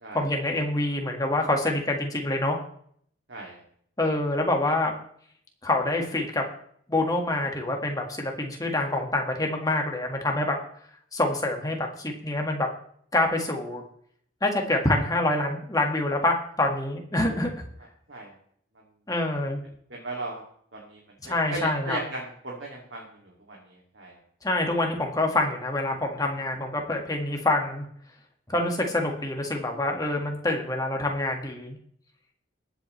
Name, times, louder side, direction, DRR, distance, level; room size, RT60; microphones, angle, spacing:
voice 1, 0.1-2.6 4.0-4.9 5.6-6.5 6.9-10.6 11.1-12.7 13.1-13.8 14.4-17.5 19.1-19.6 21.2-22.0 24.4-27.9 28.5-31.8, left 2 dB, 20° left, 2 dB, 1.8 m, -26 dB
voice 2, 3.3-3.6 18.1-18.4 19.9-20.4 20.7-21.0 21.2-24.2, right 2 dB, 65° right, -2 dB, 2.5 m, -37 dB
20.5 x 8.1 x 3.3 m, 0.63 s
head